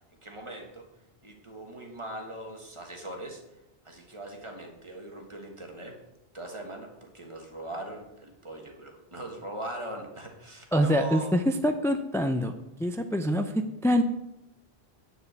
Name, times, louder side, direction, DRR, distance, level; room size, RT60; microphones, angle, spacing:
voice 1, 0.2-0.9 1.2-3.4 3.8-6.0 6.3-11.3, right 1 dB, 30° right, 2 dB, 1.7 m, -40 dB
voice 2, 10.7-12.5 12.8-14.0, equal, 5° left, 6 dB, 0.3 m, -25 dB
9.8 x 4.9 x 8.1 m, 0.91 s
omnidirectional pair, 1.1 m